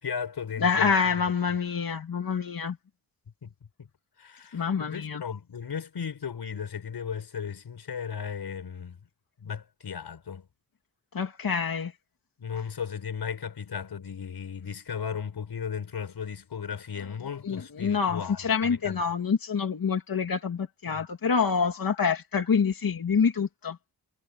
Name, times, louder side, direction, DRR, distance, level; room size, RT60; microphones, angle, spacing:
voice 1, 0.0-0.9 3.4-3.5 3.8-3.9 4.2-9.0 9.4-10.5 12.4-19.1 20.9-21.0, left 7 dB, 90° left, 5.3 m, -36 dB
voice 2, 0.6-2.8 4.5-5.2 11.1-11.9 17.4-23.8, left 6 dB, 65° left, 2.5 m, -26 dB
wide cardioid pair, 105°, 38 cm